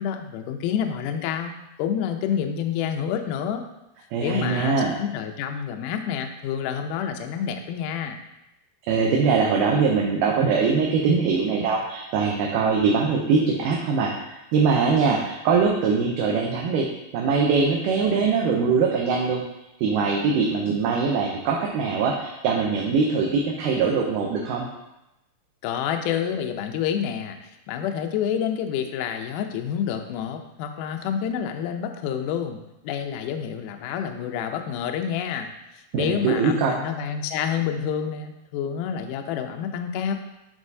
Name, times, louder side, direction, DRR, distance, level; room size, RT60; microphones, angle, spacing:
voice 1, 0.0-1.5 1.8-3.6 4.2-8.2 25.6-27.4 27.7-35.5 35.9-40.1, left 8 dB, 80° left, 5 dB, 1.9 m, -28 dB
voice 2, 4.1-4.9 8.9-14.1 14.5-16.9 17.1-19.4 19.8-24.7 35.9-36.7, right 5 dB, 80° right, -1 dB, 2.1 m, -22 dB
9.5 x 4.0 x 2.7 m, 0.91 s
omnidirectional pair, 4.1 m